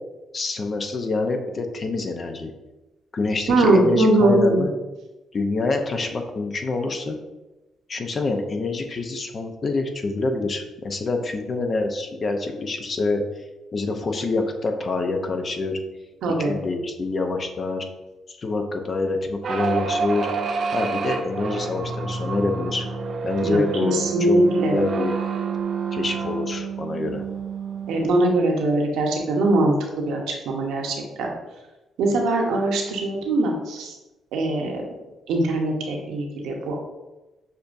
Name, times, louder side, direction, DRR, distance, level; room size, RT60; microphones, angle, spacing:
voice 1, 0.3-2.5 3.1-4.7 5.3-7.2 7.9-13.2 13.7-15.8 16.5-17.8 18.3-20.3 20.7-22.9 23.2-25.2 25.9-27.2, left 3 dB, 40° left, 4 dB, 0.6 m, -26 dB
voice 2, 3.5-4.6 16.2-16.5 23.4-24.7 27.9-31.3 32.0-33.9 34.3-34.8 35.3-36.8, right 2 dB, 85° right, 1 dB, 0.9 m, -21 dB
sound 1, 19.4-28.2, right 5 dB, 50° right, 0.5 m, -28 dB
6.5 x 2.7 x 2.5 m, 1.1 s
cardioid pair, 90°, 0 cm